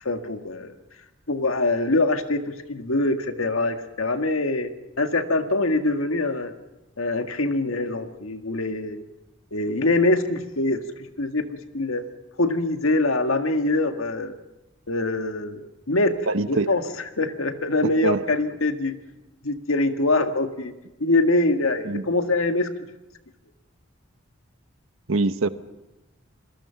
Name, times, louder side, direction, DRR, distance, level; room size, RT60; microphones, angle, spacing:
voice 1, 0.0-0.8 1.3-4.7 5.0-6.5 7.0-9.0 9.5-10.8 11.2-11.5 11.7-12.0 12.4-14.4 14.9-16.1 16.5-16.8 17.2-19.0 19.4-20.7 21.0-22.7, left 2 dB, 85° left, 7 dB, 1.8 m, -24 dB
voice 2, 16.3-16.7 18.0-18.2 21.9-22.1 25.1-25.5, right 3 dB, 75° right, 13 dB, 1.0 m, -23 dB
27.5 x 22.0 x 5.8 m, 1.0 s
head